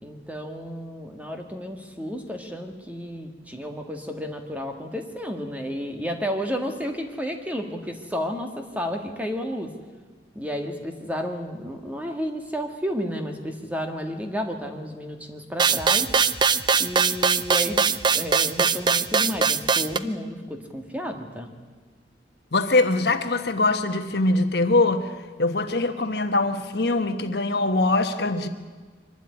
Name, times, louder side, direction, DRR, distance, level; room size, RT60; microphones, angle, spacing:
voice 1, 0.0-9.7 10.3-16.1 16.8-17.8 18.1-21.5, equal, 10° right, 4 dB, 1.7 m, -32 dB
sound 1, 15.6-20.0, right 6 dB, 25° right, 0.5 m, -21 dB
voice 2, 22.5-25.1 25.4-28.5, left 2 dB, 60° left, 7 dB, 1.2 m, -22 dB
24.0 x 12.0 x 9.8 m, 1.4 s
head